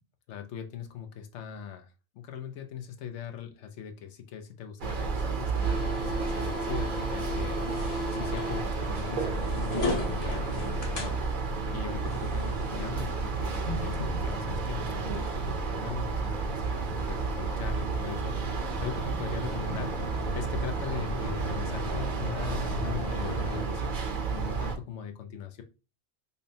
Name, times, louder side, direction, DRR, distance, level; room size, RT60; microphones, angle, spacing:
voice 1, 0.3-23.9 24.3-25.6, left 8 dB, 85° left, 6 dB, 0.9 m, -40 dB
sound 1, 4.8-24.8, right 5 dB, 55° right, 0.7 m, -32 dB
sound 2, 5.6-23.6, left 2 dB, 40° left, 0.7 m, -37 dB
5.4 x 2.0 x 2.6 m, 0.31 s
omnidirectional pair, 1.2 m